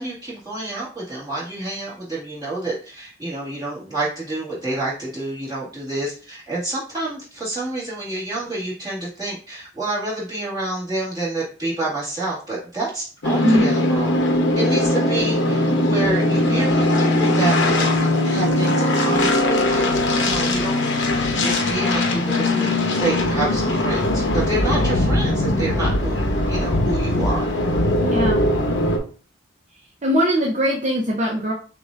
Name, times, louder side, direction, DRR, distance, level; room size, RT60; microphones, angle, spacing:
voice 1, 0.0-14.2 14.5-21.2 21.4-27.5, right 2 dB, 20° right, -8 dB, 1.9 m, -28 dB
sound 1, 13.2-29.0, left 1 dB, 70° left, 0.8 m, -20 dB
voice 2, 28.0-28.4 30.0-31.5, equal, 35° right, -2 dB, 0.6 m, -20 dB
6.5 x 2.6 x 2.5 m, 0.39 s
head